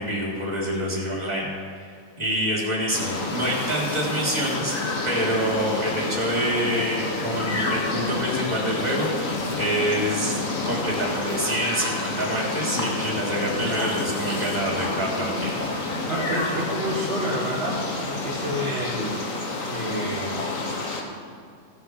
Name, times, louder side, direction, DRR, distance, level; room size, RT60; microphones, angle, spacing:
voice 1, 0.0-1.5 1.8-1.9 2.2-4.8 5.0-10.4 10.6-15.6, equal, 20° right, -4 dB, 3.2 m, -26 dB
sound 1, 2.9-21.0, left 3 dB, 70° left, 1.8 m, -29 dB
voice 2, 16.1-19.3 19.6-20.5, equal, 45° right, -6 dB, 1.8 m, -29 dB
17.0 x 6.6 x 5.5 m, 2.3 s
omnidirectional pair, 1.4 m